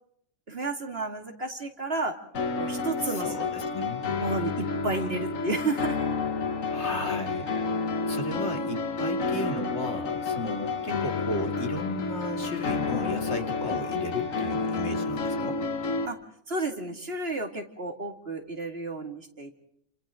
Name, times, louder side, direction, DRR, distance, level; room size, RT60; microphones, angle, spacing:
voice 1, 0.5-2.1 2.6-3.4 4.2-6.1 13.7-14.0 16.0-16.2 16.5-19.5, right 3 dB, 50° right, 5 dB, 2.8 m, -32 dB
sound 1, 2.3-16.1, left 4 dB, 80° left, 2.0 m, -30 dB
voice 2, 3.0-4.1 6.7-7.5 7.8-15.6, left 1 dB, 55° left, 4 dB, 3.1 m, -35 dB
29.5 x 28.0 x 3.8 m, 0.70 s
omnidirectional pair, 1.4 m